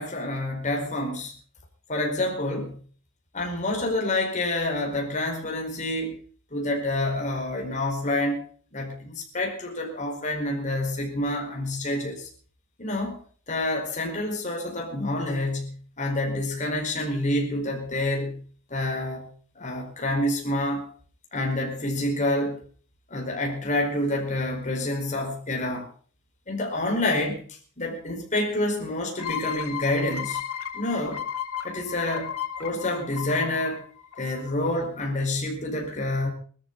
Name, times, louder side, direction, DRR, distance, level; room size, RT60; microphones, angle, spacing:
voice 1, 0.0-1.3 1.9-2.8 3.3-6.2 6.5-8.4 8.7-12.3 12.8-13.2 13.5-18.4 18.7-19.3 19.5-20.8 21.3-22.6 23.1-25.9 26.5-27.4 27.8-30.4 30.7-31.2 31.6-32.3 32.6-33.8 34.2-36.3, left 1 dB, 35° left, 1 dB, 4.8 m, -28 dB
sound 1, 29.2-34.7, left 9 dB, 90° left, 1.9 m, -34 dB
21.0 x 13.5 x 4.0 m, 0.43 s
head